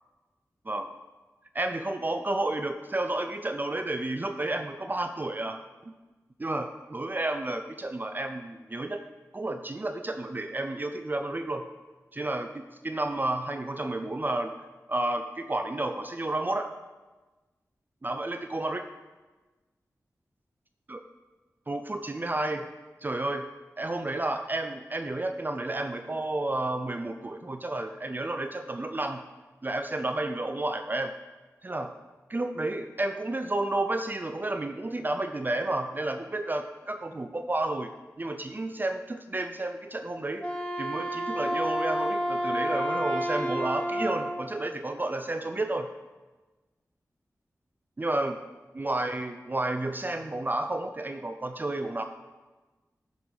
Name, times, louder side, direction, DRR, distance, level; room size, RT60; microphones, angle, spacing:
voice 1, 1.5-5.6 5.9-6.0 6.4-9.0 9.3-11.7 12.1-14.5 14.9-16.7 18.0-18.9 20.9-21.0 21.7-22.7 23.0-23.5 23.8-29.2 29.6-31.1 31.6-31.9 32.3-37.9 38.2-40.4 40.8-45.9 48.0-48.4 48.7-52.0, right 2 dB, 30° right, 6 dB, 0.4 m, -31 dB
Wind instrument woodwind instrument, 40.3-44.5, equal, 15° left, 1.2 m, -30 dB
10.5 x 3.8 x 4.8 m, 1.2 s
cardioid pair, 55°, 6 cm